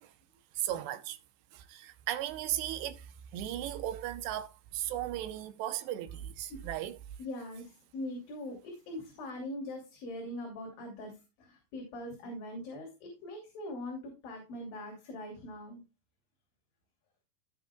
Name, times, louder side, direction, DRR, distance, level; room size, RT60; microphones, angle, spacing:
voice 1, 0.5-1.2 1.5-7.0, right 12 dB, 80° right, 2.8 m, -36 dB
voice 2, 7.2-15.8, left 1 dB, 55° left, 4.3 m, -42 dB
17.5 x 6.4 x 2.3 m
omnidirectional pair, 5.2 m